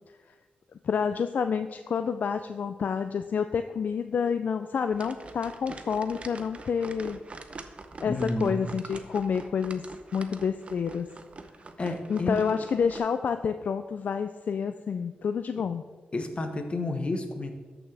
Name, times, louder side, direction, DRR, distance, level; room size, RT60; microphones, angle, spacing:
voice 1, 0.8-7.2 8.0-9.8 10.1-11.1 12.1-15.8, left 6 dB, 60° left, 9 dB, 0.3 m, -29 dB
sound 1, 4.9-13.0, right 3 dB, 40° right, 0.7 m, -45 dB
voice 2, 8.0-8.7 11.8-12.6 16.1-17.5, left 2 dB, 35° left, 5 dB, 1.1 m, -30 dB
13.0 x 6.1 x 3.4 m, 1.3 s
cardioid pair, 95°, 3 cm